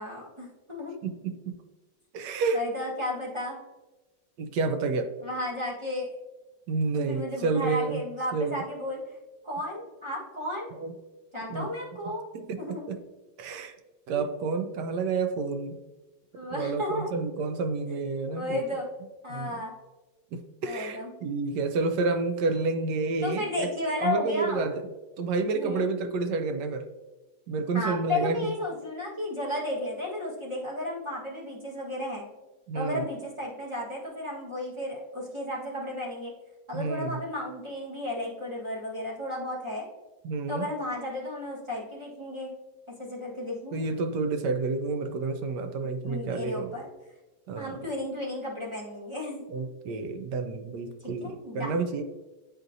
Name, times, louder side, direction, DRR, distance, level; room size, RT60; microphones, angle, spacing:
voice 1, 0.0-0.9 2.5-3.6 5.2-6.1 6.9-9.0 9.4-10.7 11.3-12.2 12.6-12.9 14.1-14.2 16.3-17.1 18.3-18.9 19.2-19.7 20.6-21.1 23.2-24.7 25.5-25.8 27.7-32.3 32.7-36.3 36.7-39.8 40.5-42.5 43.0-43.8 46.0-46.9 47.6-49.4 51.2-52.0, left 1 dB, 20° right, -4 dB, 1.2 m, -33 dB
voice 2, 1.0-1.6 2.1-2.6 4.4-5.1 6.7-8.0 8.3-8.6 10.8-10.9 11.5-11.7 12.3-12.4 12.9-13.0 13.4-13.7 14.1-15.8 16.5-18.6 19.3-19.5 20.3-23.7 24.0-24.8 25.2-26.9 27.5-28.5 32.7-33.0 36.7-37.2 40.2-40.6 43.7-46.7 47.5-47.8 49.5-52.0, right 4 dB, 70° right, 7 dB, 1.1 m, -29 dB
8.9 x 4.2 x 2.6 m, 1.1 s
omnidirectional pair, 2.0 m